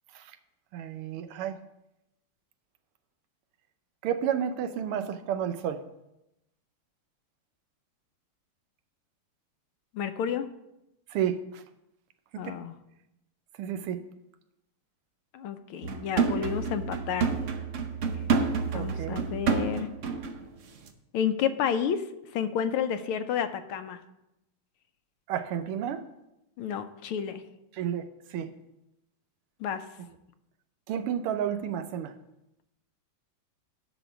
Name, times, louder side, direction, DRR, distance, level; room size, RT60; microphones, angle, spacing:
voice 1, 0.7-1.6 4.0-5.8 11.1-11.6 12.4-12.6 13.6-14.0 18.7-19.3 25.3-26.0 27.7-28.5 30.9-32.1, right 9 dB, 85° right, 9 dB, 1.7 m, -31 dB
voice 2, 9.9-10.5 12.4-12.8 15.3-17.3 18.7-19.9 21.1-22.0 22.3-24.0 26.6-27.4 29.6-29.8, left 8 dB, 80° left, 9 dB, 1.5 m, -30 dB
sound 1, 15.8-20.4 20.8-20.9, right 5 dB, 70° right, 0.7 m, -29 dB
11.5 x 4.1 x 6.9 m, 0.88 s
omnidirectional pair, 2.4 m